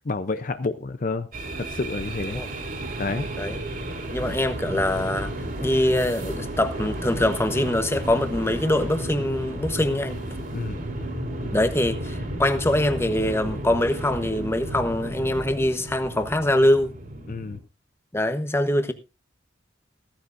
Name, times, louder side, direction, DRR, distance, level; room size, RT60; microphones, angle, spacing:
voice 1, 0.1-1.3 1.5-2.4 3.0-3.3 10.5-10.8 17.3-17.6, left 3 dB, 45° left, 0.6 m, -29 dB
sound 1, 1.3-17.6, right 1 dB, 50° right, 3.7 m, -33 dB
voice 2, 4.1-5.3 5.6-10.2 11.5-16.9 18.1-18.9, left 1 dB, 15° left, 1.1 m, -23 dB
15.5 x 14.5 x 2.6 m
head